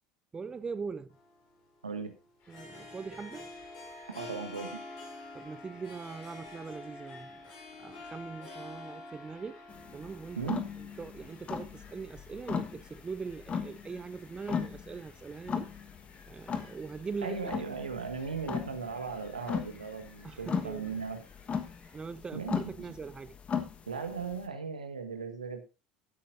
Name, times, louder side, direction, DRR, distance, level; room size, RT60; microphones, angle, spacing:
voice 1, 0.3-1.2 2.5-3.5 5.3-7.5 7.8-9.6 9.9-10.6 11.0-15.7 16.3-17.4 20.2-21.0 21.9-23.4, right 5 dB, 20° right, 0.6 m, -41 dB
Harp, 1.1-11.5, left 2 dB, 60° left, 5.0 m, -47 dB
sound 1, 2.4-22.0, left 4 dB, 45° left, 3.8 m, -60 dB
voice 2, 4.1-4.8 10.4-10.7 17.2-21.2 22.3-22.7 23.9-25.6, right 5 dB, 85° right, 1.5 m, -37 dB
sound 2, 9.7-24.5, left 6 dB, 30° left, 1.3 m, -38 dB
15.5 x 8.6 x 2.6 m
figure-of-eight pair, 65°, 4 cm